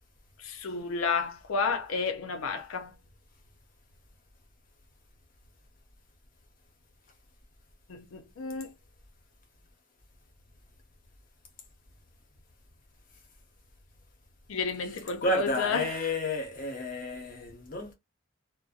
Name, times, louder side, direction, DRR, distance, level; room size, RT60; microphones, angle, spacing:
voice 1, 0.4-3.0 7.9-8.7 14.5-15.9, left 5 dB, 85° left, 0.5 m, -31 dB
voice 2, 15.2-17.9, left 1 dB, 40° left, 0.7 m, -31 dB
2.5 x 2.1 x 2.3 m
head